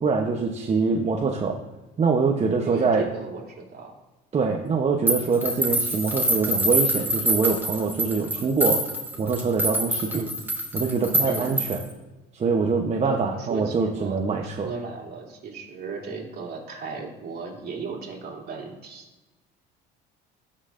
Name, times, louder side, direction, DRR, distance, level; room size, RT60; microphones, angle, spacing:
voice 1, 0.0-1.6 2.0-3.1 4.3-8.8 9.2-10.2 10.7-11.8 12.3-14.7, right 4 dB, 30° right, 1 dB, 0.9 m, -24 dB
voice 2, 2.7-4.0 10.1-10.4 11.3-11.5 13.0-19.0, right 4 dB, 50° right, -2 dB, 2.7 m, -35 dB
sound 1, 5.1-11.9, right 1 dB, 10° right, 2.2 m, -25 dB
12.5 x 5.6 x 2.6 m, 1.1 s
supercardioid pair, 90°, 21 cm